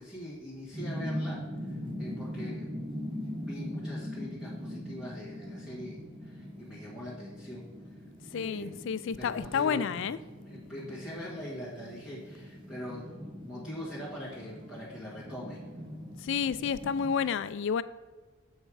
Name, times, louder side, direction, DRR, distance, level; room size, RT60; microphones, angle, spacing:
voice 1, 0.0-2.7 3.3-8.0 8.3-8.9 9.2-10.1 10.4-15.6, equal, 5° right, -8 dB, 1.6 m, -43 dB
sound 1, 0.7-17.2, equal, 25° right, 1.2 m, -41 dB
voice 2, 8.3-10.2 16.2-17.8, left 6 dB, 60° left, 16 dB, 0.3 m, -30 dB
7.3 x 5.4 x 4.7 m, 1.4 s
head